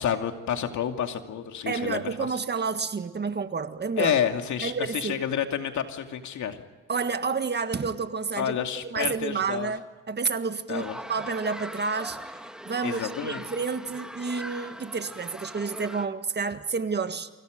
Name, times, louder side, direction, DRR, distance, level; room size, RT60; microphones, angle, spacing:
voice 1, 0.0-2.3 4.0-6.6 8.4-9.7 10.7-11.0 12.8-13.4, left 9 dB, 70° left, 5 dB, 2.5 m, -29 dB
voice 2, 1.6-4.1 4.6-5.2 6.9-8.6 8.9-9.8 10.1-12.2 12.6-17.3, right 5 dB, 35° right, 9 dB, 1.7 m, -29 dB
sound 1, 10.7-16.1, equal, ahead, 1.9 m, -40 dB
29.5 x 25.5 x 5.2 m, 1.3 s
cardioid pair, 90°, 30 cm